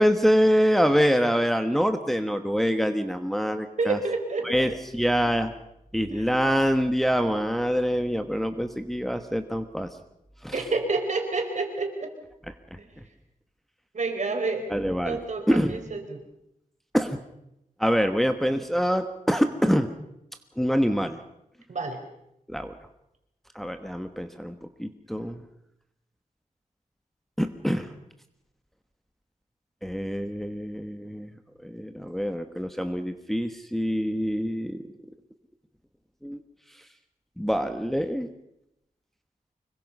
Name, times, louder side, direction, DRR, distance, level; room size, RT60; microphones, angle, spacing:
voice 1, 0.0-4.0 4.4-5.5 5.9-9.9 10.4-10.5 14.7-15.2 15.5-15.8 16.9-17.2 17.8-19.9 20.6-21.2 22.5-22.7 23.5-25.4 27.4-27.9 29.8-31.3 31.6-34.8 36.2-36.4 37.4-38.3, equal, ahead, 7 dB, 1.3 m, -25 dB
voice 2, 3.8-4.5 6.1-6.2 10.5-12.1 12.8-12.9 13.9-14.7 15.0-16.2 21.7-22.0, right 3 dB, 60° right, 4 dB, 4.5 m, -29 dB
25.5 x 22.5 x 5.5 m, 0.82 s
wide cardioid pair, 105°, 14 cm